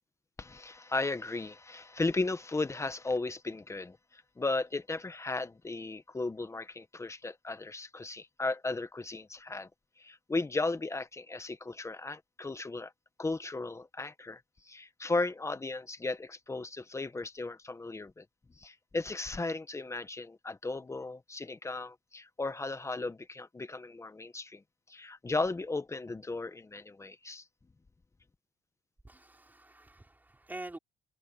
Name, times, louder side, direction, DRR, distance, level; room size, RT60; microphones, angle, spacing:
voice 1, 0.4-9.7 10.0-12.9 13.2-18.2 18.6-24.6 24.9-27.4, left 3 dB, 15° left, 1.3 m, -35 dB
voice 2, 29.0-30.8, right 2 dB, 10° right, 4.6 m, -46 dB
cardioid pair, 110°, 17 cm